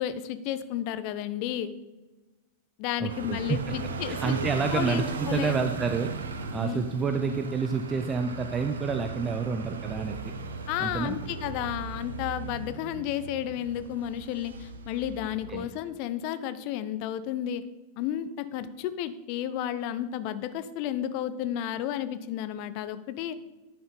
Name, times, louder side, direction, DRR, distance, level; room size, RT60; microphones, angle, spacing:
voice 1, 0.0-1.7 2.8-4.4 4.7-5.6 6.6-6.9 10.7-17.6 18.0-23.3, left 11 dB, 45° left, 13 dB, 0.6 m, -32 dB
voice 2, 3.0-3.6 4.1-6.1 6.5-10.3 10.8-11.2 15.5-15.7, right 5 dB, 20° right, 6 dB, 0.5 m, -29 dB
sound 1, 3.1-15.7, right 4 dB, 70° right, 0.7 m, -37 dB
11.0 x 5.9 x 3.9 m, 1.2 s
figure-of-eight pair, 90°, 0 cm